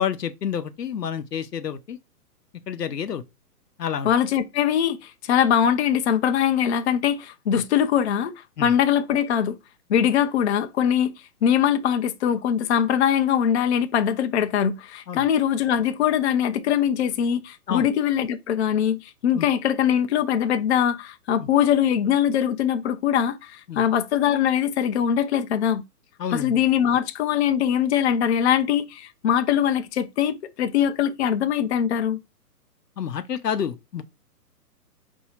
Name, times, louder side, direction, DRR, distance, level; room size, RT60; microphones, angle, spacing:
voice 1, 0.0-2.0 2.7-3.2 3.8-4.1 8.6-8.7 15.1-15.2 17.7-17.8 19.3-19.5 23.7-23.8 26.2-26.6 33.0-34.0, left 8 dB, 90° left, 0.7 m, -29 dB
voice 2, 4.0-8.3 8.6-9.6 9.9-11.1 11.4-25.8 26.3-32.2, left 9 dB, 45° left, 0.5 m, -22 dB
4.6 x 2.7 x 4.1 m
hypercardioid pair, 135°, 47 cm